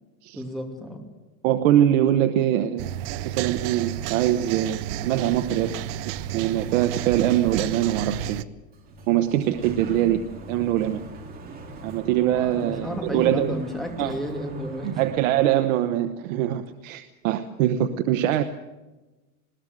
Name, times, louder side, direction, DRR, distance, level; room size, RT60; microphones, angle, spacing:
voice 1, 0.3-1.0 12.2-15.0, equal, ahead, 1 dB, 2.5 m, -32 dB
voice 2, 1.4-2.9 3.2-5.7 6.3-8.4 9.1-10.2 10.5-11.0 11.8-13.5 14.0-14.1 14.8-18.4, right 12 dB, 65° right, 8 dB, 1.1 m, -23 dB
sound 1, 2.8-8.4, right 11 dB, 45° right, 0.7 m, -32 dB
Sliding door, 8.5-15.9, right 2 dB, 20° right, 2.4 m, -42 dB
20.5 x 17.5 x 7.9 m, 1.1 s
supercardioid pair, 170°, 41 cm